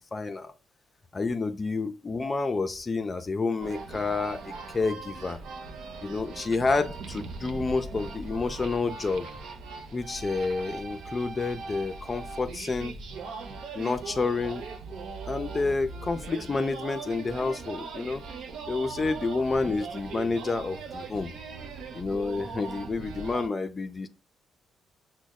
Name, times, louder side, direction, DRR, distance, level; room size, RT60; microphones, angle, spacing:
voice 1, 0.1-0.5 1.1-5.4 6.0-9.3 9.9-13.0 13.8-14.6 15.3-18.2 18.7-21.3 21.9-24.1, left 3 dB, 30° left, 8 dB, 0.4 m, -29 dB
sound 1, 3.6-23.5, right 4 dB, 75° right, 0.6 m, -40 dB
6.1 x 2.1 x 2.3 m, 0.34 s
cardioid pair, 90°, 0 cm